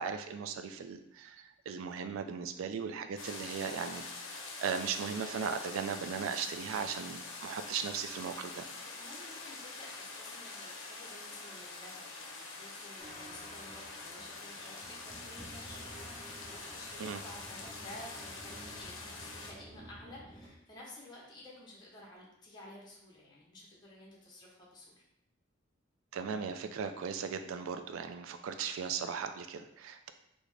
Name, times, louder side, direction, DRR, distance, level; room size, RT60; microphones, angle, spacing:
voice 1, 0.0-8.7 17.0-17.2 26.1-30.1, right 6 dB, 80° right, 7 dB, 0.3 m, -37 dB
sound 1, 3.2-19.5, left 3 dB, 80° left, 0.5 m, -45 dB
voice 2, 8.7-25.0, left 1 dB, 20° left, -5 dB, 0.7 m, -53 dB
sound 2, 13.0-20.5, equal, 20° right, 0.8 m, -52 dB
3.6 x 2.1 x 3.3 m, 0.79 s
head